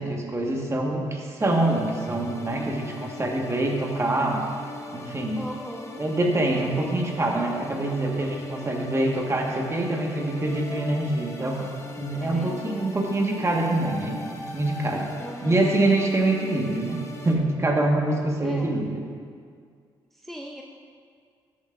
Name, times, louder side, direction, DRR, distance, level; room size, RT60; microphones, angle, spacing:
voice 1, 0.0-4.4 4.9-5.4 6.0-11.7 12.0-15.1 15.4-19.1, right 2 dB, 30° right, 0 dB, 1.6 m, -25 dB
sound 1, 1.4-17.4, left 2 dB, 30° left, 1.1 m, -40 dB
voice 2, 5.4-6.0 12.2-12.9 15.2-15.6 18.4-18.7 20.2-20.6, equal, ahead, 0 dB, 0.6 m, -38 dB
13.0 x 7.4 x 2.6 m, 2.2 s
supercardioid pair, 60°, 10 cm